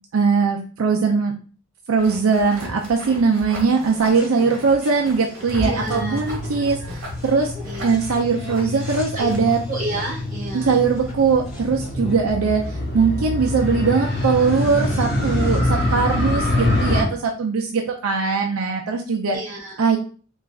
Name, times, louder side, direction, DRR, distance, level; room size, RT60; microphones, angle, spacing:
voice 1, 0.1-1.3 1.9-7.5 7.8-9.6 10.5-19.4 19.8-20.0, right 5 dB, 80° right, 1 dB, 0.5 m, -20 dB
sound 1, 2.0-10.2, right 1 dB, 60° right, 1.2 m, -37 dB
sound 2, 3.7-15.6, left 2 dB, 5° right, 1.8 m, -43 dB
Motorcycle, 5.5-17.0, left 1 dB, 65° left, 1.6 m, -25 dB
voice 2, 5.6-6.9 7.6-8.0 8.5-8.6 9.1-10.8 19.3-19.8, right 2 dB, 35° right, -1 dB, 1.4 m, -31 dB
3.8 x 3.1 x 2.3 m, 0.38 s
head